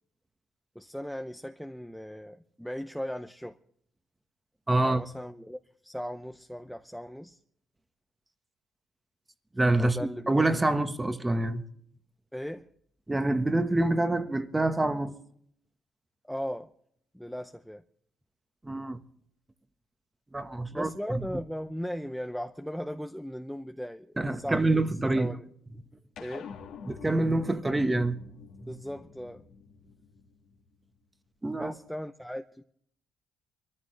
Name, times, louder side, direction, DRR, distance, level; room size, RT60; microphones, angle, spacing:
voice 1, 0.7-3.6 4.8-7.4 9.8-10.7 12.3-12.7 16.3-16.7 17.1-17.8 20.6-24.8 25.1-25.4 26.2-26.6 28.7-29.4 31.6-32.6, equal, ahead, 0.6 m, -38 dB
voice 2, 4.7-5.0 9.5-10.0 10.3-11.6 13.1-15.1 18.6-19.0 20.3-21.4 24.2-25.3 26.9-28.2 28.6-28.7 31.4-31.7, right 2 dB, 15° right, 1.3 m, -26 dB
sound 1, 26.2-30.9, left 6 dB, 80° left, 1.8 m, -47 dB
23.5 x 14.0 x 3.3 m
cardioid pair, 90°, 0 cm